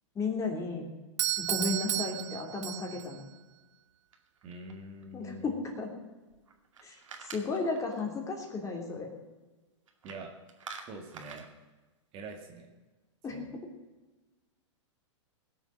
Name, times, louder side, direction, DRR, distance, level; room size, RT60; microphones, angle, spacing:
voice 1, 0.1-0.9 1.4-3.2 5.1-5.9 6.8-7.0 7.2-9.1 13.2-13.4, left 3 dB, 20° left, 1 dB, 3.1 m, -34 dB
Doorbell, 1.2-3.2, right 13 dB, 70° right, 0.6 m, -33 dB
sound 1, 4.1-5.0 6.5-8.0 9.9-10.2 10.5-11.5, right 5 dB, 85° right, 2.3 m, -47 dB
voice 2, 4.4-5.6 10.0-10.3 10.9-11.5 12.1-12.7 13.3-13.6, right 2 dB, 35° right, 3 dB, 2.1 m, -45 dB
18.0 x 7.2 x 6.5 m, 1.2 s
hypercardioid pair, 125°, 16 cm